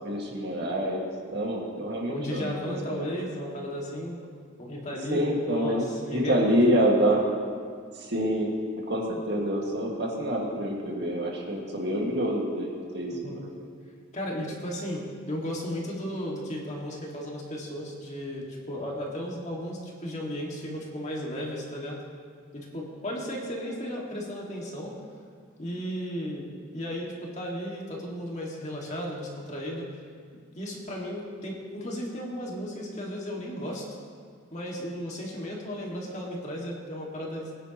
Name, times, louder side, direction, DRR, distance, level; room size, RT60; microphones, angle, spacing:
voice 1, 0.0-1.0 1.3-3.1 5.1-7.2 7.9-8.5 8.9-12.7 12.9-13.5, right 1 dB, 55° right, -1 dB, 1.9 m, -27 dB
voice 2, 2.1-4.2 4.6-6.9 13.1-13.4 14.1-22.0 22.5-24.9 25.6-26.5 26.7-29.9 30.6-33.8 34.5-37.5, equal, 35° left, -2 dB, 2.0 m, -35 dB
21.5 x 10.0 x 3.0 m, 2.1 s
head